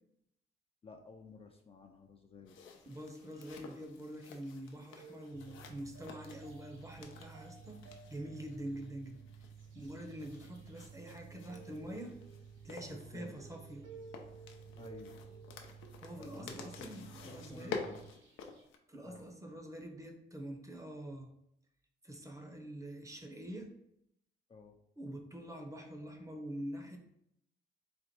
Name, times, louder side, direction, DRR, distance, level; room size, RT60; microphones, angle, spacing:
voice 1, 0.8-2.8 12.9-13.4 14.8-15.2 16.2-18.0 19.0-19.3 24.5-24.8, left 3 dB, 30° left, 2 dB, 0.5 m, -53 dB
sound 1, 2.5-18.8, left 5 dB, 85° left, 0.6 m, -50 dB
sound 2, 2.6-3.8 4.4-18.6, right 3 dB, 75° right, 1.1 m, -58 dB
voice 2, 2.9-7.8 8.1-9.2 9.7-12.2 12.6-13.9 16.0-17.8 18.9-21.3 22.0-23.7 25.0-27.0, right 1 dB, 15° right, 3 dB, 0.8 m, -45 dB
Mechanical fan, 5.3-18.1, right 7 dB, 55° right, 0.4 m, -54 dB
4.3 x 2.4 x 4.4 m, 0.76 s
cardioid pair, 90°, 20 cm